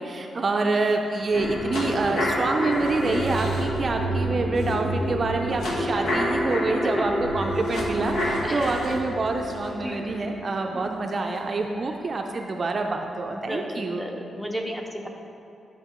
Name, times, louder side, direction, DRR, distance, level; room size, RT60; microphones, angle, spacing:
voice 1, 0.0-14.0, right 3 dB, 35° right, 3 dB, 0.4 m, -27 dB
sound 1, 1.3-11.4 11.8-11.9, equal, 80° left, 1.1 m, -28 dB
voice 2, 8.4-9.0 9.8-10.1 10.7-11.0 11.8-11.9 13.3-15.1, equal, 5° left, 1 dB, 0.7 m, -34 dB
11.0 x 5.7 x 3.0 m, 2.7 s
wide cardioid pair, 140°, 0 cm